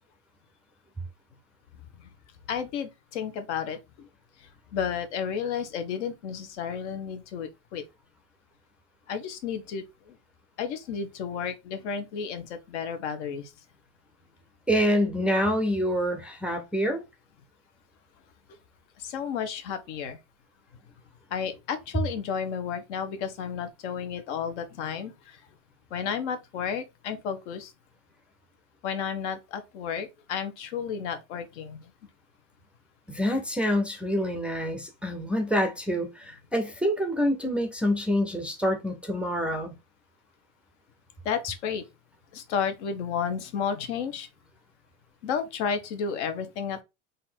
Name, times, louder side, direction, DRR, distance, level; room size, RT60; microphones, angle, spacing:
voice 1, 2.5-4.1 4.7-7.8 9.1-10.2 10.6-13.5 19.0-20.2 21.3-25.4 25.9-27.7 28.8-31.8 41.2-41.8 42.3-44.3 45.2-46.8, left 7 dB, 85° left, 1.1 m, -32 dB
voice 2, 14.7-17.0 33.1-39.7, equal, 5° right, 0.3 m, -26 dB
4.0 x 2.6 x 4.3 m
cardioid pair, 160°, 34 cm